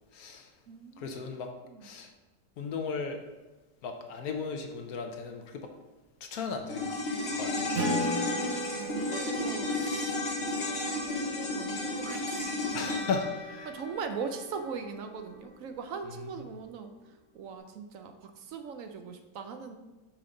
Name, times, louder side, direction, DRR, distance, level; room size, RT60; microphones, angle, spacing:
voice 1, 0.1-0.5 1.0-1.5 1.8-2.1 2.6-3.2 3.8-5.7 6.2-6.9 7.3-7.7 12.7-13.7 16.2-16.3, left 5 dB, 70° left, 4 dB, 1.1 m, -36 dB
voice 2, 0.7-1.3 1.7-1.9 7.6-10.2 10.6-13.1 13.6-16.9 17.3-19.8, right 5 dB, 65° right, 6 dB, 0.9 m, -40 dB
sound 1, 6.7-15.2 15.5-15.6, left 2 dB, 40° left, 1.1 m, -33 dB
Acoustic guitar, 7.7-12.7, equal, 40° right, 1.0 m, -36 dB
5.9 x 5.2 x 3.8 m, 1.1 s
omnidirectional pair, 1.8 m